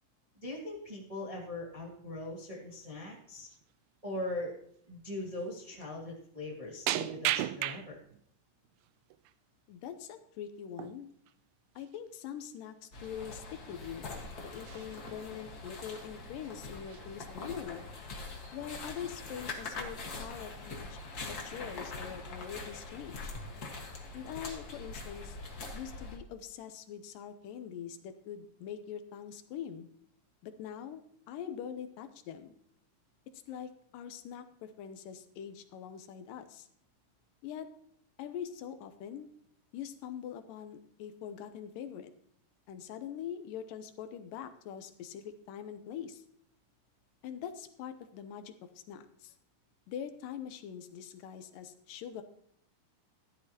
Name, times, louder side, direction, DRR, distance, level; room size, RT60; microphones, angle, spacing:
voice 1, 0.4-3.5 4.0-4.5 4.9-8.0, left 1 dB, 15° right, -3 dB, 1.2 m, -40 dB
sound 1, 2.7-3.0 3.4-3.6 4.2-4.3 5.3-5.4 5.7-5.9 6.9-8.2 8.6-9.3 10.7-11.0 11.3-11.4 11.8-12.0 12.7-12.8 13.0-13.2 13.7-14.3 14.5-15.1 15.7-16.1 16.4-16.5 16.8-17.5 18.0-18.4, right 13 dB, 85° right, 1.7 m, -37 dB
voice 2, 9.7-11.1 11.8-14.1 14.4-17.9 18.5-23.4 24.1-25.4 25.7-29.9 30.4-32.5 33.5-36.7 37.4-37.7 38.2-39.3 39.7-42.1 42.7-46.2 47.2-49.3 49.9-52.2, left 8 dB, 85° left, 8 dB, 2.5 m, -43 dB
sound 2, 12.9-26.2, left 3 dB, 45° left, 1.4 m, -43 dB
13.5 x 11.5 x 2.9 m, 0.66 s
omnidirectional pair, 3.8 m